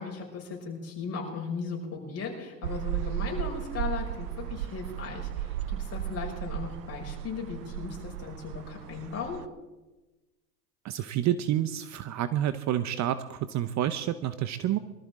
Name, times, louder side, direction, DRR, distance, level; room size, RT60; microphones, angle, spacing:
voice 1, 0.0-9.4, left 5 dB, 30° left, -1 dB, 5.9 m, -37 dB
sound 1, 2.6-9.5, right 11 dB, 80° right, 0.8 m, -35 dB
voice 2, 10.8-14.8, right 11 dB, 40° right, 13 dB, 0.8 m, -29 dB
23.5 x 14.0 x 3.7 m, 1.1 s
hypercardioid pair, 95°, 46 cm